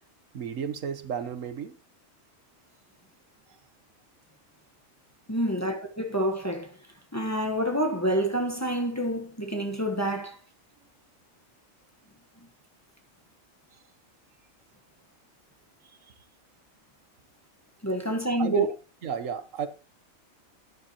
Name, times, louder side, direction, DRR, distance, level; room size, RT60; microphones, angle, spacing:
voice 1, 0.3-1.8 16.1-16.2 18.4-18.7 19.0-19.7, right 6 dB, 80° right, 1.4 m, -32 dB
voice 2, 5.3-6.7 7.1-10.4 17.8-18.6, right 1 dB, 15° left, 1.2 m, -27 dB
11.5 x 10.0 x 3.0 m
omnidirectional pair, 1.4 m